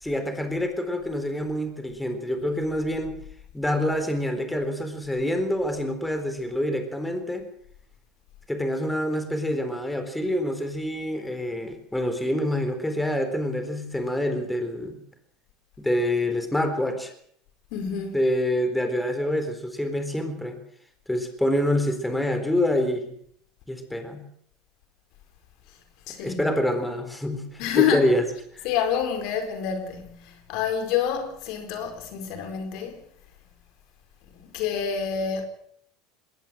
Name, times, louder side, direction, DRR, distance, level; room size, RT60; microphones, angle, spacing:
voice 1, 0.0-3.2 3.5-7.4 8.5-15.0 15.8-17.1 18.1-20.6 21.1-23.1 23.7-24.2 26.2-28.2 28.5-28.7, left 1 dB, 5° left, 4.0 m, -26 dB
voice 2, 17.7-18.2 26.1-26.5 27.6-28.1 28.6-33.0 34.3-35.5, left 8 dB, 65° left, 4.6 m, -27 dB
21.0 x 18.0 x 7.7 m
supercardioid pair, 105°, 0 cm